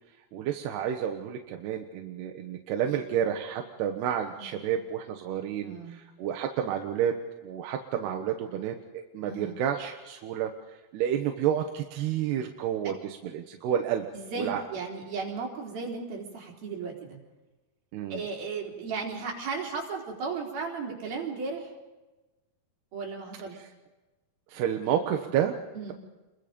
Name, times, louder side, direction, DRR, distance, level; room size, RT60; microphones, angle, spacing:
voice 1, 0.3-7.1 7.4-10.5 10.9-14.1 14.4-14.6 17.9-18.2 24.5-25.5, right 9 dB, 90° right, 3 dB, 3.3 m, -30 dB
voice 2, 5.6-6.0 9.2-9.6 14.1-17.2 18.1-21.7 22.9-23.6 25.7-25.9, right 4 dB, 65° right, -1 dB, 5.7 m, -35 dB
28.0 x 22.5 x 5.2 m, 1.1 s
omnidirectional pair, 4.6 m